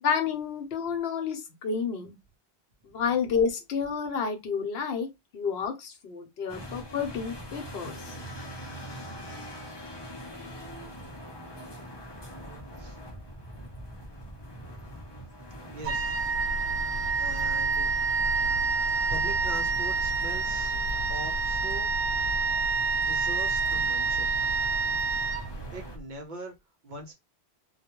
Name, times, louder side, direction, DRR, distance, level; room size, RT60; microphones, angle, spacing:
voice 1, 0.0-2.2 2.8-5.1 5.3-8.1, left 6 dB, 70° left, 0.9 m, -30 dB
sound 1, 6.5-26.0, equal, 30° left, 0.6 m, -43 dB
voice 2, 15.7-16.4 17.2-17.9 19.1-20.8 21.1-21.9 23.0-24.3 25.7-26.5 26.8-27.1, right 1 dB, 55° right, 0.6 m, -41 dB
Wind instrument woodwind instrument, 15.8-25.9, right 4 dB, 80° right, 0.9 m, -27 dB
2.3 x 2.1 x 2.9 m
omnidirectional pair, 1.1 m